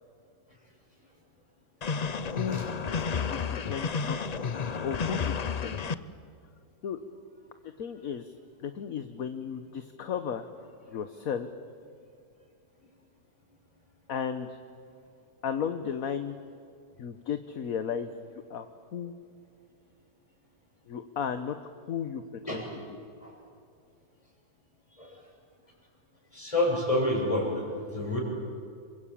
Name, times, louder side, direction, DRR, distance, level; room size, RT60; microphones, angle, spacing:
sound 1, 1.8-5.9, left 5 dB, 90° left, 0.3 m, -31 dB
voice 1, 2.3-2.7 3.3-5.7 6.8-7.0 7.8-8.3 8.6-10.5 10.9-11.5 14.1-14.6 15.4-16.3 17.0-18.1 18.5-18.7 18.9-19.1 20.9-22.2 22.5-22.6, left 7 dB, 60° left, 9 dB, 1.4 m, -34 dB
voice 2, 26.3-27.5 27.9-28.2, left 1 dB, 20° left, -2 dB, 7.1 m, -28 dB
28.5 x 23.5 x 8.6 m, 2.4 s
omnidirectional pair, 1.8 m